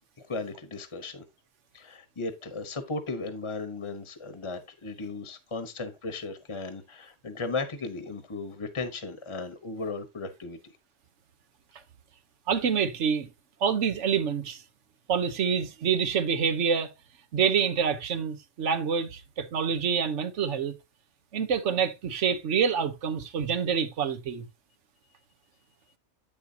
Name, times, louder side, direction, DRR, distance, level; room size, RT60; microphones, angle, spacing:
voice 1, 0.3-1.2 1.7-10.6, left 3 dB, 30° left, 0.9 m, -36 dB
voice 2, 12.5-13.3 13.6-14.6 15.1-16.9 17.3-20.8 21.3-24.5, right 7 dB, 90° right, 1.2 m, -27 dB
8.4 x 6.9 x 2.7 m
omnidirectional pair, 1.2 m